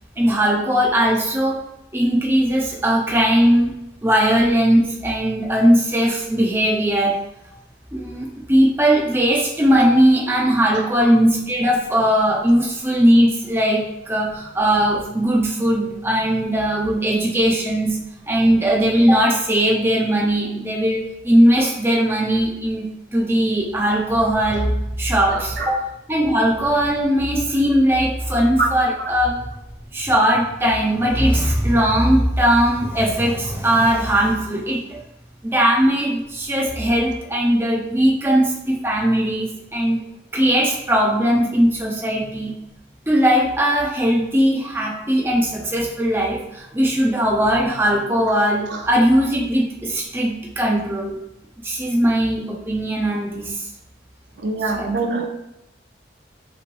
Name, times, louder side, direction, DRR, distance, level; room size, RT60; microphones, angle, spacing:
voice 1, 0.2-1.6 1.9-7.2 7.9-18.0 18.3-22.9 23.1-29.4 29.9-35.0 35.4-40.0 40.3-42.5 43.1-51.1 51.6-53.7 54.6-54.9, equal, 15° right, -3 dB, 0.7 m, -19 dB
voice 2, 25.3-25.7 28.6-28.7 54.4-55.3, right 3 dB, 80° right, 1 dB, 0.8 m, -23 dB
5.8 x 3.2 x 2.6 m, 0.88 s
head